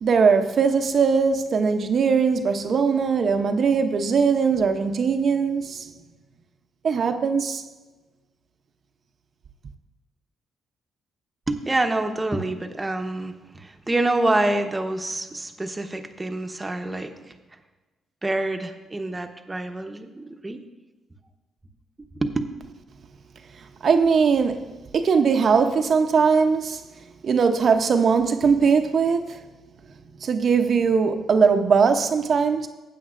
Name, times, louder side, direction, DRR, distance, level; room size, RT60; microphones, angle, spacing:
voice 1, 0.0-5.9 6.8-7.6 23.8-24.7 24.9-26.8 27.2-29.5 30.2-32.7, right 5 dB, 50° right, 0.7 m, -20 dB
voice 2, 11.5-17.1 18.2-20.6 22.0-22.4, right 2 dB, 20° right, 0.9 m, -26 dB
15.0 x 8.6 x 2.5 m
cardioid pair, 90°, 0 cm